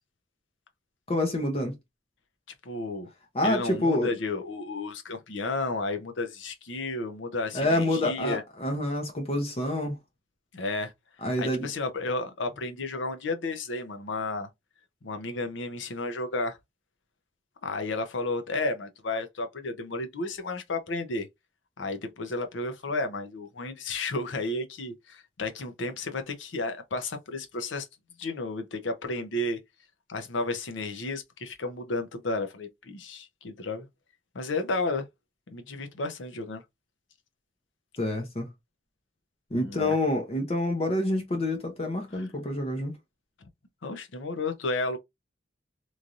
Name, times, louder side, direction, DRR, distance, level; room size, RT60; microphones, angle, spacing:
voice 1, 1.1-1.7 3.3-4.1 7.5-10.0 11.2-11.7 38.0-38.5 39.5-42.9, left 1 dB, 35° left, 0.7 m, -27 dB
voice 2, 2.6-3.1 3.4-8.4 10.5-10.9 11.4-14.5 15.0-16.6 17.6-21.3 21.8-27.9 28.2-29.6 30.1-33.9 34.3-35.0 35.5-36.6 39.6-40.0 42.1-42.3 43.8-45.0, left 2 dB, 75° left, 0.7 m, -32 dB
3.1 x 2.6 x 2.5 m
head